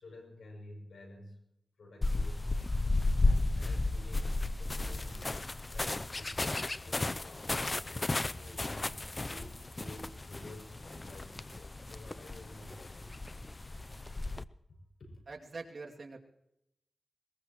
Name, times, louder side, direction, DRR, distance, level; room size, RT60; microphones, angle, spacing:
voice 1, 0.0-1.4 1.8-2.6 3.6-5.4 5.7-7.5 7.8-13.2 14.1-14.2 15.0-15.3, left 1 dB, 85° left, 2 dB, 6.9 m, -52 dB
sound 1, 2.0-14.4, left 2 dB, 30° left, 0.5 m, -34 dB
voice 2, 15.3-16.2, right 3 dB, 55° right, -1 dB, 2.5 m, -44 dB
22.0 x 21.0 x 3.1 m, 0.83 s
wide cardioid pair, 80°, 0 cm